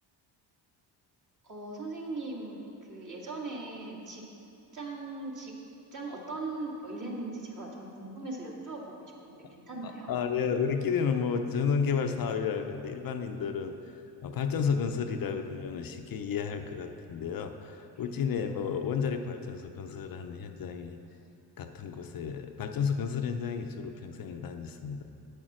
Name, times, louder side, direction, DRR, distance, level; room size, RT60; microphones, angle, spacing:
voice 1, 1.4-2.6 2.9-4.2 4.7-5.5 5.9-8.8 9.3-10.1 17.9-18.0, right 2 dB, 45° right, -3 dB, 2.2 m, -39 dB
voice 2, 9.8-21.0 21.6-25.0, left 6 dB, 55° left, 6 dB, 0.6 m, -32 dB
8.4 x 6.5 x 6.1 m, 2.6 s
cardioid pair, 80°, 43 cm